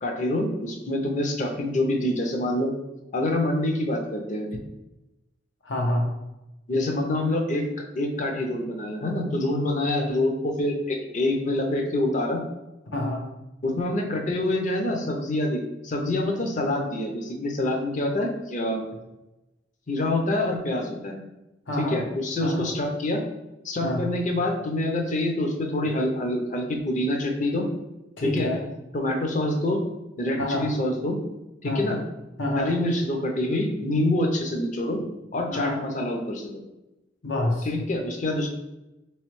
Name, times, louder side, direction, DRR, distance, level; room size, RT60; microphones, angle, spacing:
voice 1, 0.0-2.7 3.1-4.5 6.7-12.4 13.6-18.8 19.9-21.2 21.8-23.2 23.6-27.7 28.2-28.5 28.9-29.8 30.2-31.2 31.6-32.0 32.6-35.0 35.3-36.5 37.6-38.5, left 1 dB, 45° left, 2 dB, 0.6 m, -26 dB
voice 2, 5.6-6.1 12.9-13.2 21.7-22.0 22.4-22.7 23.8-24.0 28.2-28.6 30.4-30.7 31.6-31.9 32.4-32.7 35.5-35.8 37.2-37.7, left 1 dB, 90° left, 0 dB, 0.9 m, -27 dB
3.6 x 3.1 x 3.1 m, 0.97 s
head